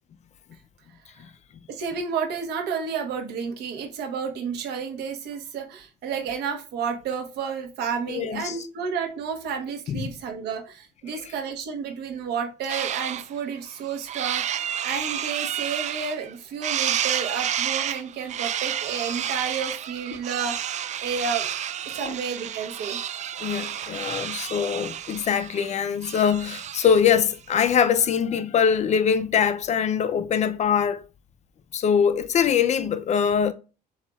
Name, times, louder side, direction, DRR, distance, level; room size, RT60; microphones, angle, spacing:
voice 1, 1.7-21.5 21.8-23.0, right 6 dB, 80° right, 1.3 m, -31 dB
voice 2, 8.1-8.6 9.9-10.1 22.0-22.1 23.4-31.0 31.7-33.5, left 7 dB, 45° left, 0.5 m, -23 dB
sound 1, 12.7-13.2 13.7-16.3 16.6-27.1, right 10 dB, 45° right, 0.4 m, -30 dB
7.2 x 2.8 x 2.3 m
cardioid pair, 110°, 17 cm